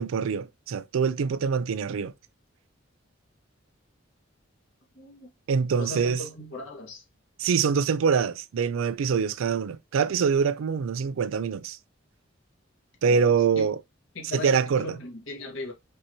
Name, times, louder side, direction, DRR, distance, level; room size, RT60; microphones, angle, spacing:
voice 1, 0.0-2.1 5.5-6.2 7.4-11.8 13.0-13.8 14.3-14.9, right 6 dB, 85° right, 0.4 m, -24 dB
voice 2, 4.9-5.3 5.8-7.0 13.1-13.3 13.5-13.7 14.1-15.7, left 2 dB, 75° left, 1.6 m, -38 dB
5.4 x 2.9 x 2.8 m
head